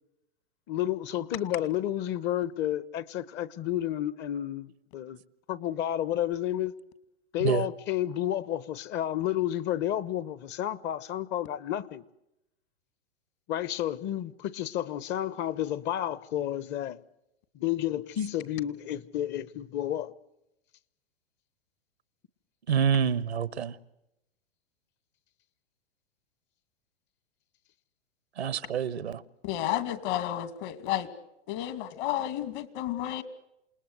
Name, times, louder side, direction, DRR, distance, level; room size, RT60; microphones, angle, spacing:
voice 1, 0.7-5.2 5.5-6.7 7.3-12.0 13.5-17.0 17.5-20.1, left 12 dB, 35° left, 1.1 m, -31 dB
voice 2, 22.7-23.7 28.4-29.2, right 8 dB, 90° right, 1.2 m, -27 dB
voice 3, 29.4-31.1 31.5-33.2, left 12 dB, 50° left, 2.5 m, -31 dB
28.0 x 20.0 x 8.0 m
hypercardioid pair, 110°, 32 cm